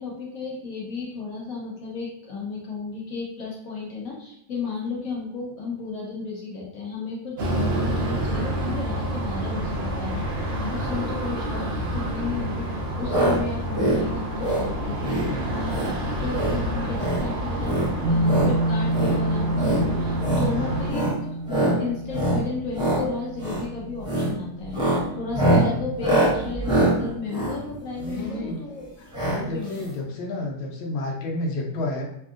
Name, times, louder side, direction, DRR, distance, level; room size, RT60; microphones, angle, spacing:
voice 1, 0.0-21.3 21.6-29.9, left 4 dB, 60° left, -4 dB, 1.0 m, -34 dB
sound 1, 7.4-20.9, right 1 dB, 65° right, 0.6 m, -28 dB
sound 2, 13.1-13.4 13.6-14.0 14.4-14.7 15.0-15.3 15.7-15.9 16.3-16.6 16.9-17.2 17.6-18.5 18.9-19.2 19.5-19.8 20.2-20.5 20.9-21.2 21.5-21.8 22.1-22.4 22.7-23.0 23.4-23.6 24.0-24.3 24.7-28.3 29.1-29.4 29.7-29.8 29.9-30.0, right 1 dB, 5° right, 0.4 m, -24 dB
sound 3, 18.0-27.5, right 1 dB, 85° right, 1.4 m, -30 dB
voice 2, 28.0-28.6 29.2-32.0, left 2 dB, 90° left, 0 dB, 1.5 m, -30 dB
3.5 x 2.4 x 2.4 m, 0.74 s
omnidirectional pair, 2.1 m